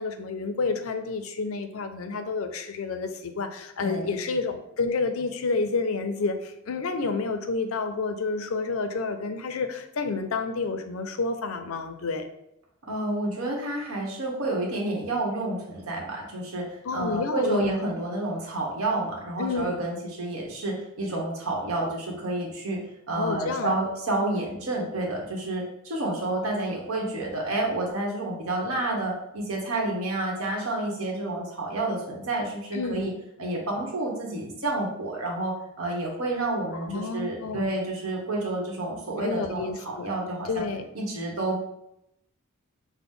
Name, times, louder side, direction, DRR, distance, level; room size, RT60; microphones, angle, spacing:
voice 1, 0.0-12.2 16.8-17.8 19.4-19.9 23.1-23.8 32.7-33.1 36.8-37.7 39.2-40.1 40.4-40.9, left 4 dB, 70° left, 8 dB, 0.5 m, -29 dB
voice 2, 12.8-16.7 16.9-22.8 23.1-33.1 33.4-40.6 40.9-41.6, right 2 dB, 80° right, -1 dB, 1.2 m, -29 dB
5.9 x 2.1 x 3.7 m, 0.82 s
head